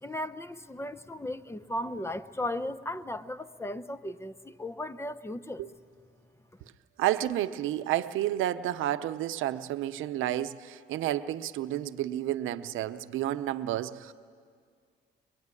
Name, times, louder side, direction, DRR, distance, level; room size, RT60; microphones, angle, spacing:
voice 1, 0.0-5.6, left 1 dB, 15° left, 14 dB, 0.7 m, -36 dB
voice 2, 7.0-14.1, right 13 dB, 85° right, 11 dB, 0.7 m, -31 dB
23.5 x 21.0 x 9.7 m, 2.1 s
cardioid pair, 90°, 20 cm